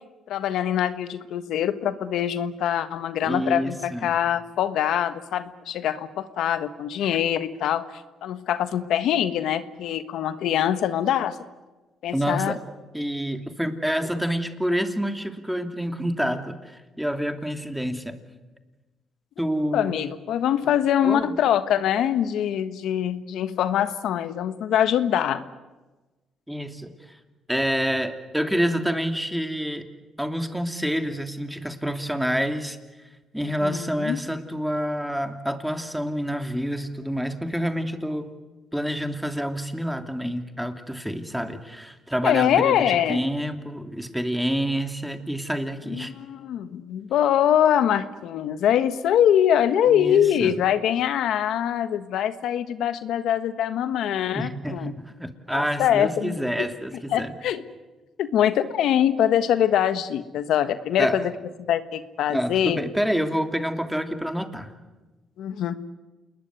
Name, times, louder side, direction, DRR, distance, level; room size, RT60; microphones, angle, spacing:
voice 1, 0.3-11.4 12.0-12.6 19.7-25.4 33.6-34.2 42.2-43.2 45.9-54.9 55.5-56.7 57.1-57.6 58.2-61.3 61.7-62.8 65.4-65.7, left 10 dB, 80° left, 11 dB, 1.4 m, -23 dB
voice 2, 3.2-4.1 12.1-12.6 12.9-18.2 19.4-20.0 21.0-21.3 26.5-27.2 27.5-29.9 30.2-32.8 33.3-38.3 38.7-46.1 49.9-50.5 54.3-57.3 61.0-61.2 62.3-64.7, equal, ahead, 7 dB, 2.9 m, -28 dB
28.5 x 20.5 x 9.6 m, 1.2 s
cardioid pair, 90°, 0 cm